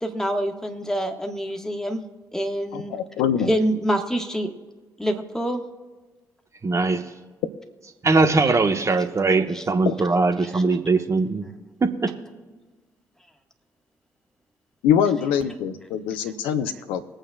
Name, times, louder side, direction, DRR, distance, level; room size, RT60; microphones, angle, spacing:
voice 1, 0.0-2.0 2.3-2.9 3.5-4.5 5.0-5.6 9.5-9.6 10.4-10.6, equal, 5° left, 4 dB, 1.6 m, -26 dB
voice 2, 2.7-3.5 9.9-10.0 14.8-17.0, left 8 dB, 70° left, 8 dB, 0.8 m, -23 dB
voice 3, 6.6-7.1 8.0-11.5 11.8-12.1, right 3 dB, 30° right, 6 dB, 1.3 m, -21 dB
23.0 x 8.9 x 2.4 m, 1.3 s
figure-of-eight pair, 40°, 9 cm